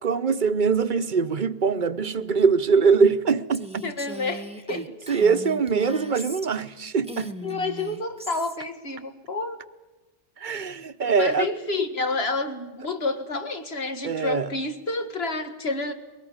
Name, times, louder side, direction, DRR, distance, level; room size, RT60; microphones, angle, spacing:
voice 1, 0.0-3.9 4.7-7.3 10.4-11.5 14.0-14.5, right 5 dB, 45° right, 1.0 m, -23 dB
Female speech woman speaking, 3.5-6.7 7.0-8.6, equal, 5° right, 1.1 m, -39 dB
voice 2, 3.8-4.9 7.4-9.6 11.2-15.9, left 3 dB, 60° left, 2.1 m, -29 dB
23.0 x 19.0 x 8.8 m
omnidirectional pair, 1.2 m